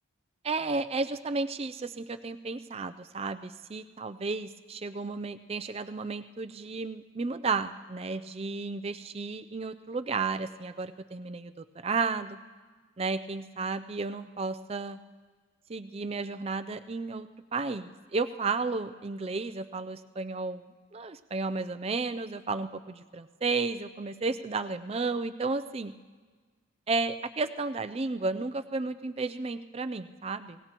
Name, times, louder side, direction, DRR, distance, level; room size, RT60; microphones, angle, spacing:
voice 1, 0.4-12.4 13.0-15.0 15.7-25.9 26.9-30.6, right 3 dB, 30° right, 11 dB, 0.4 m, -33 dB
26.0 x 17.5 x 3.0 m, 1.4 s
head